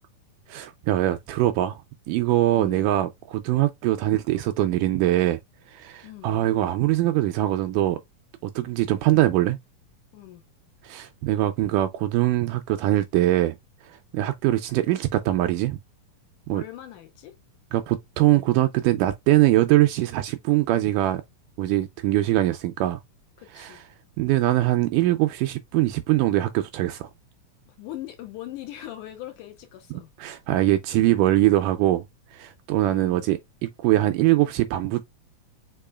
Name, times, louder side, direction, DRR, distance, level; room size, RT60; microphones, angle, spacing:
voice 1, 0.5-5.4 5.7-8.0 8.4-9.6 10.8-13.6 14.1-15.8 16.5-16.6 17.7-21.2 21.6-23.0 23.6-23.8 24.2-27.1 30.2-32.1 32.3-35.0, right 15 dB, 80° right, 2.0 m, -22 dB
voice 2, 6.0-6.4 10.1-10.4 16.5-17.4 23.4-23.8 27.7-30.1 32.8-33.3, left 13 dB, 70° left, 2.1 m, -40 dB
5.4 x 3.7 x 2.2 m
omnidirectional pair, 4.1 m